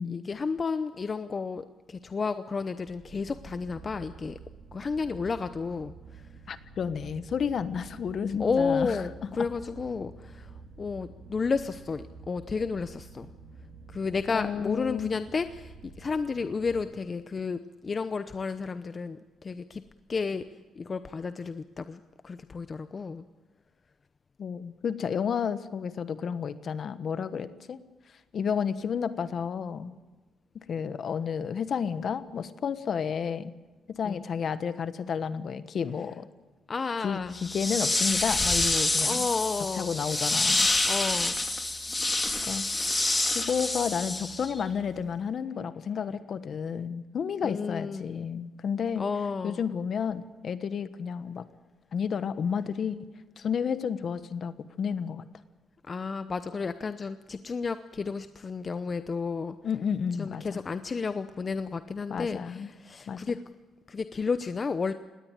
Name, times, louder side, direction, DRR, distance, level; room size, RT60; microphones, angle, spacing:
voice 1, 0.1-4.4 4.7-5.9 8.4-10.5 10.8-13.3 13.9-19.8 20.1-20.4 20.8-23.2 34.0-34.2 36.7-37.4 39.0-39.9 40.8-41.4 47.4-48.1 49.0-49.6 55.9-59.6 60.2-63.4 63.9-64.9, left 5 dB, 35° left, 11 dB, 0.8 m, -32 dB
sound 1, 2.9-16.8, right 4 dB, 65° right, 4.4 m, -49 dB
voice 2, 6.5-9.1 9.4-9.5 14.3-15.1 24.4-27.8 28.3-29.9 30.5-33.5 33.9-36.2 37.0-39.3 39.7-40.7 42.4-43.0 43.3-49.0 49.4-51.5 51.9-53.0 53.4-55.2 59.6-60.6 62.1-62.7 63.1-63.2, left 7 dB, 55° left, 13 dB, 1.2 m, -31 dB
sound 2, 37.4-44.6, left 2 dB, 20° left, 2.6 m, -27 dB
19.5 x 17.5 x 9.0 m, 1.2 s
cardioid pair, 90°, 0 cm